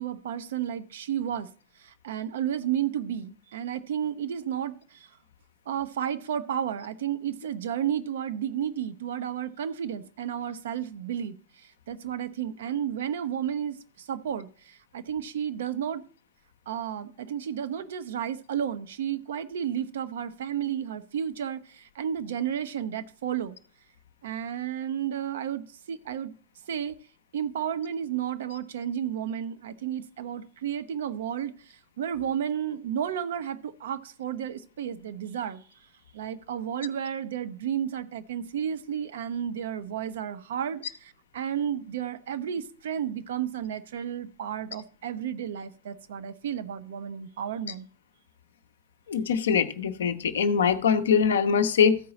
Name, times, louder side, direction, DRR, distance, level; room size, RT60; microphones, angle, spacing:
voice 1, 0.0-1.5 1.8-5.2 5.7-16.0 16.7-23.6 24.2-26.3 26.7-27.0 27.3-35.6 36.1-47.9, right 9 dB, 60° right, 0.5 m, -32 dB
voice 2, 49.1-52.0, left 6 dB, 65° left, 0.6 m, -23 dB
14.0 x 4.6 x 4.0 m
figure-of-eight pair, 90°, 0 cm